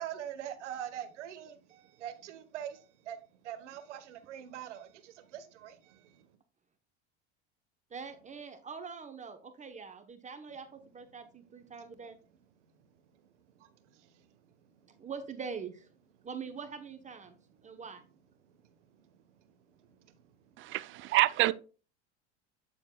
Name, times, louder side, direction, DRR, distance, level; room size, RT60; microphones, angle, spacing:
voice 1, 0.0-6.4 11.3-11.9 12.6-13.7 14.3-15.1 17.5-17.8 18.4-20.8, right 10 dB, 85° right, 1.2 m, -46 dB
voice 2, 7.9-12.2 15.0-15.9 16.2-17.3 17.6-18.0, right 5 dB, 20° right, 0.9 m, -43 dB
voice 3, 20.6-21.5, right 17 dB, 35° right, 0.5 m, -27 dB
8.6 x 7.2 x 2.2 m
supercardioid pair, 110°, 35 cm